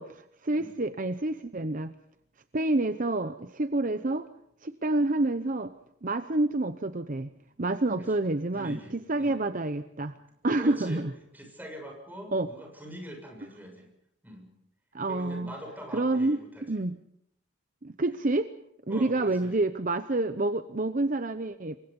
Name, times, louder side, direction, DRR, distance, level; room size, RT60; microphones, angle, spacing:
voice 1, 0.0-1.9 2.5-4.3 4.6-5.7 6.0-7.3 7.6-10.1 10.4-11.1 12.3-12.5 14.9-15.5 15.9-17.0 17.8-18.5 18.9-21.8, right 2 dB, 45° right, 10 dB, 0.8 m, -28 dB
voice 2, 8.5-9.4 10.5-11.0 11.3-13.9 14.2-14.5 15.0-16.7 18.9-19.6, equal, 10° right, 2 dB, 7.0 m, -43 dB
27.5 x 24.5 x 5.4 m, 0.72 s
head